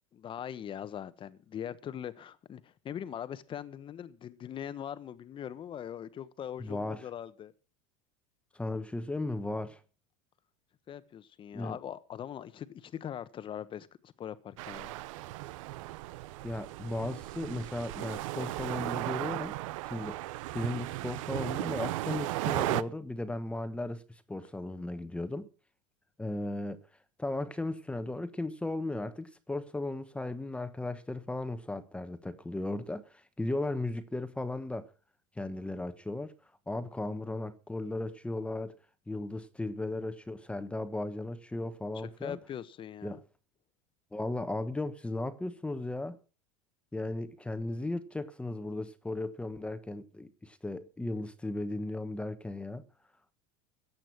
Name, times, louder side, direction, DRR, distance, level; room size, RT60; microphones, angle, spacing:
voice 1, 0.1-7.5 10.9-14.9 42.2-43.2, left 9 dB, 30° left, 1.2 m, -41 dB
voice 2, 6.6-7.0 8.5-9.8 11.5-11.8 16.4-19.6 19.8-20.2 20.5-24.0 24.3-25.5 26.2-26.8 27.2-34.9 35.4-36.3 36.7-38.8 39.1-42.4 43.0-43.2 44.1-46.2 46.9-52.8, left 2 dB, 5° left, 1.2 m, -36 dB
sound 1, 14.6-22.8, right 17 dB, 70° right, 0.8 m, -36 dB
15.0 x 9.0 x 6.0 m
supercardioid pair, 125°, 17 cm